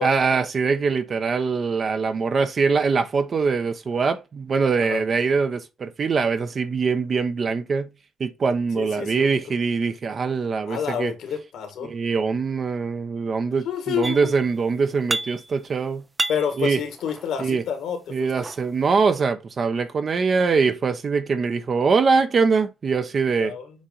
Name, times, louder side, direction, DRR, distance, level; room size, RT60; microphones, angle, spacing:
voice 1, 0.0-7.9 8.2-11.1 11.8-16.0 16.6-16.8 17.4-17.6 18.1-23.5, right 5 dB, 45° right, 0.6 m, -23 dB
voice 2, 8.8-9.4 10.7-11.9 13.7-14.3 16.3-18.3 23.4-23.7, left 8 dB, 80° left, 1.7 m, -29 dB
sound 1, 14.0-14.6 14.8-15.7 16.0-17.6 18.2-19.3, right 2 dB, 20° right, 0.3 m, -31 dB
7.2 x 2.6 x 5.2 m
cardioid pair, 90°, 0 cm